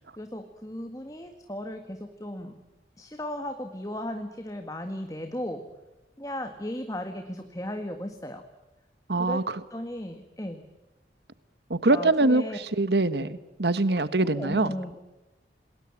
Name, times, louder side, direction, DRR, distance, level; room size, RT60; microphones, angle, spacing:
voice 1, 0.2-2.6 3.0-5.7 6.2-8.4 9.1-10.6 11.9-12.6 13.2-13.3 14.2-15.0, left 1 dB, 20° left, 1.7 m, -36 dB
voice 2, 9.1-9.6 11.7-14.7, right 2 dB, 70° right, 1.3 m, -24 dB
28.0 x 20.5 x 8.8 m
head